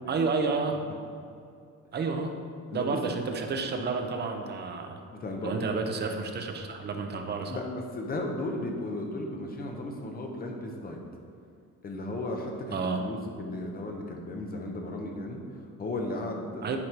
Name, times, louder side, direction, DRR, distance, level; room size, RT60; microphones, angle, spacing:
voice 1, 0.1-0.9 1.9-2.4 2.7-5.0 5.4-7.6 12.7-13.0 16.6-16.8, right 4 dB, 30° right, 5 dB, 0.6 m, -30 dB
voice 2, 5.1-5.7 7.5-11.0 11.8-16.8, left 2 dB, 25° left, 2 dB, 0.8 m, -35 dB
9.6 x 4.2 x 4.6 m, 2.5 s
cardioid pair, 175°, 34 cm